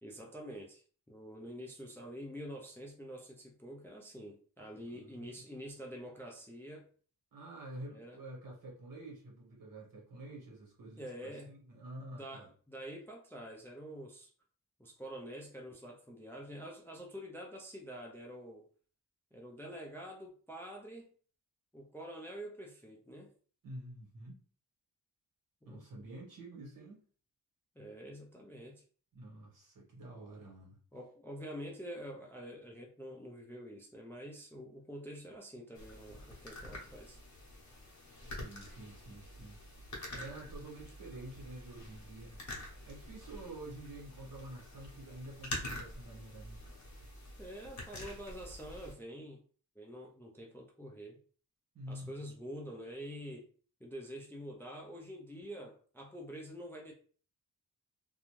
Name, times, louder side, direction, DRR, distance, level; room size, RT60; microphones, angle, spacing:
voice 1, 0.0-6.9 7.9-8.2 11.0-11.5 12.2-14.3 14.8-18.6 19.3-21.1 21.7-23.3 25.6-25.8 27.8-28.8 30.9-37.2 47.4-49.4 49.8-51.2 51.9-53.5 53.8-56.9, equal, 5° left, 0 dB, 0.3 m, -47 dB
voice 2, 4.9-5.3 7.3-12.5 23.6-24.4 25.6-27.0 29.1-30.8 38.2-39.6 40.1-42.4 42.8-46.6 51.7-52.1, right 1 dB, 65° right, -2 dB, 1.3 m, -48 dB
sound 1, 35.8-48.9, left 1 dB, 55° left, 0.8 m, -47 dB
2.5 x 2.2 x 3.0 m, 0.42 s
wide cardioid pair, 165°, 35 cm